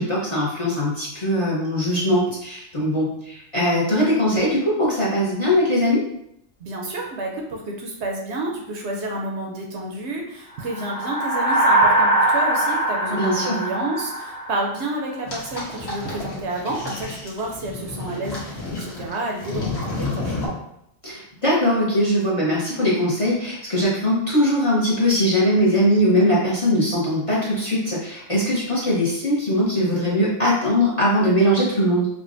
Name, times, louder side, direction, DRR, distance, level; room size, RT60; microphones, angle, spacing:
voice 1, 0.0-6.0 13.1-13.6 21.0-32.1, equal, 35° left, -6 dB, 0.7 m, -21 dB
voice 2, 6.6-20.4, right 2 dB, 65° right, 0 dB, 0.8 m, -30 dB
sound 1, 10.6-15.2, right 1 dB, 80° left, 1.1 m, -21 dB
sound 2, 15.3-20.5, left 2 dB, 55° left, 1.2 m, -31 dB
4.8 x 2.1 x 2.5 m, 0.76 s
omnidirectional pair, 1.3 m